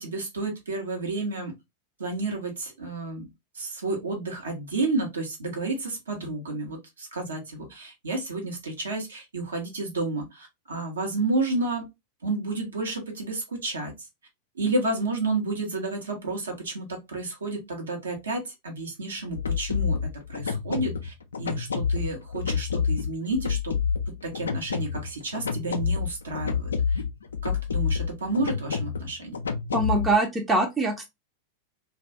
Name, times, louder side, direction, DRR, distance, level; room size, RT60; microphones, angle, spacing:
voice 1, 0.0-1.5 2.0-3.3 3.5-11.9 12.2-13.9 14.6-20.0 20.3-23.8 24.2-27.0 27.4-29.4, right 2 dB, 70° right, 0.8 m, -31 dB
sound 1, 19.2-30.2, left 6 dB, 70° left, 0.3 m, -29 dB
voice 2, 29.7-31.1, right 2 dB, 15° right, 0.5 m, -23 dB
2.2 x 2.2 x 2.6 m
figure-of-eight pair, 90°, 0 cm